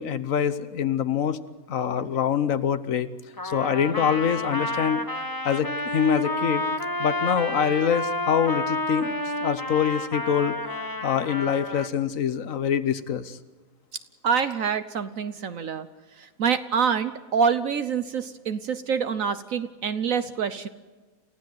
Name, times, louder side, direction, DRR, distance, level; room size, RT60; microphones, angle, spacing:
voice 1, 0.0-1.4 1.7-3.1 3.4-5.0 5.4-6.6 7.0-9.1 9.4-10.6 11.0-13.4, left 8 dB, 60° left, 14 dB, 1.3 m, -25 dB
Trumpet, 3.4-11.9, left 2 dB, 15° left, 1.2 m, -30 dB
voice 2, 14.2-15.9 16.2-20.7, right 6 dB, 60° right, 11 dB, 1.2 m, -26 dB
28.0 x 15.5 x 7.8 m, 1.3 s
omnidirectional pair, 1.7 m